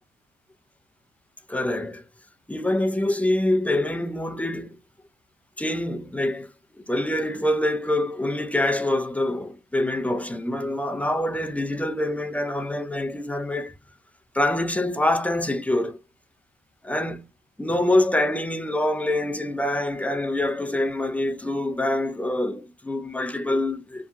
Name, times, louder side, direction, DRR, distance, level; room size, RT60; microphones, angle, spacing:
voice 1, 1.5-2.0 2.5-4.8 5.6-6.5 6.9-13.7 14.3-16.0 16.8-17.3 17.6-24.1, left 1 dB, 5° left, 0.5 m, -25 dB
2.8 x 2.2 x 2.5 m
cardioid pair, 90°, 20 cm